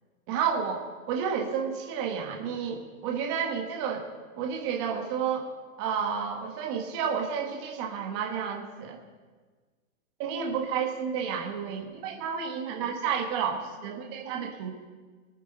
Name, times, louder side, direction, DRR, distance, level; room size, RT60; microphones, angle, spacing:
voice 1, 0.3-4.1 4.4-5.5 5.8-9.0 10.2-14.7, right 7 dB, 20° right, 1 dB, 1.3 m, -31 dB
24.0 x 9.9 x 3.9 m, 1.4 s
hypercardioid pair, 175°, 42 cm